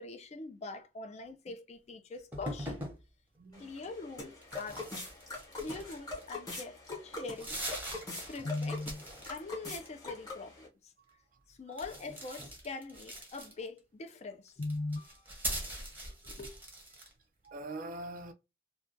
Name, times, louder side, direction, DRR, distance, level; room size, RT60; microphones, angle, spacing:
voice 1, 0.0-2.8 3.6-4.9 5.6-7.8 8.2-10.9 11.5-15.4 16.2-16.5, left 3 dB, 35° left, 0.4 m, -42 dB
sound 1, 2.3-3.0 4.4-6.4 6.8-6.9 7.2-9.4 9.6-10.2 11.7-13.8 14.5-17.1, right 1 dB, 10° right, 0.7 m, -42 dB
voice 2, 3.4-3.7 11.0-11.2 11.7-11.8 16.2-16.3 17.4-18.3, right 2 dB, 45° right, 0.4 m, -44 dB
sound 2, 3.5-10.7, left 3 dB, 20° left, 0.9 m, -43 dB
2.3 x 2.2 x 2.5 m
head